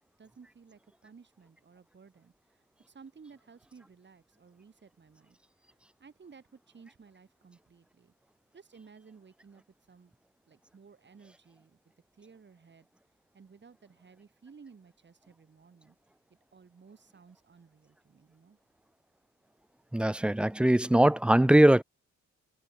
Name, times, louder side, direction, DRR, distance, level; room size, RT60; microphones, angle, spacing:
voice 1, 0.2-5.4 5.7-8.1 8.5-10.1 10.5-11.8 12.1-12.9 13.3-16.0 16.3-18.6, right 5 dB, 35° right, 7.7 m, -56 dB
voice 2, 19.9-21.8, right 1 dB, 5° right, 0.4 m, -21 dB
cardioid pair, 90°, 30 cm